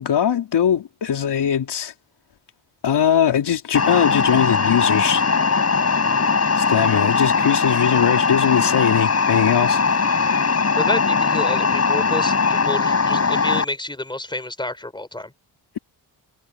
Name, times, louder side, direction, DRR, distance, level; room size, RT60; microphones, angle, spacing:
voice 1, 0.0-1.9 2.8-5.2 6.6-9.8, left 8 dB, 70° left, 4.1 m, -20 dB
sound 1, 3.7-13.6, left 4 dB, 35° left, 5.4 m, -20 dB
voice 2, 10.5-15.3, left 1 dB, 10° left, 4.2 m, -29 dB
cardioid pair, 80°, 42 cm